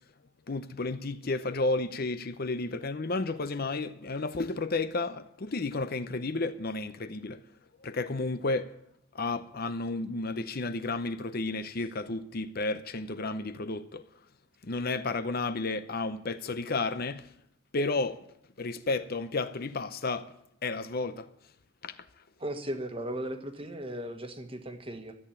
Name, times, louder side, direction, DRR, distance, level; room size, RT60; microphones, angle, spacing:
voice 1, 0.5-7.4 7.8-8.7 9.1-14.0 14.6-17.3 17.7-18.3 18.6-20.3 20.6-21.3 21.8-22.0, left 3 dB, 45° left, 0.7 m, -32 dB
voice 2, 22.4-25.1, right 1 dB, 25° right, 1.4 m, -37 dB
13.5 x 8.9 x 9.9 m
head